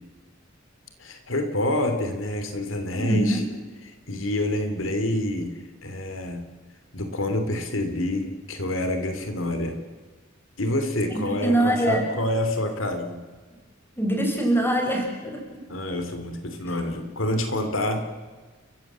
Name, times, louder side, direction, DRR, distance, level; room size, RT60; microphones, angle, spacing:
voice 1, 1.0-3.4 3.8-5.5 5.8-6.4 6.9-9.8 10.6-13.2 15.7-18.0, left 1 dB, 85° left, 7 dB, 2.9 m, -27 dB
voice 2, 2.9-3.5 11.1-12.1 14.0-15.6, right 1 dB, 10° left, 3 dB, 4.9 m, -24 dB
30.0 x 15.5 x 7.5 m, 1.4 s
head